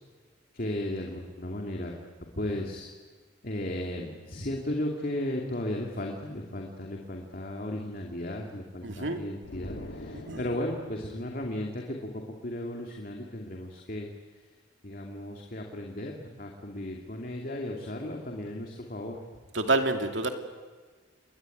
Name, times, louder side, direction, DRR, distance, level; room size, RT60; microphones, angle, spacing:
voice 1, 0.5-2.0 2.4-2.9 3.4-12.1 12.4-14.1 14.8-19.2, left 1 dB, 50° left, 1 dB, 2.7 m, -35 dB
voice 2, 8.8-9.2 10.1-10.4 19.5-20.3, right 2 dB, 70° right, 5 dB, 2.6 m, -28 dB
sound 1, 9.4-11.1, left 1 dB, 80° left, 2.2 m, -43 dB
29.0 x 22.0 x 9.3 m, 1.4 s
head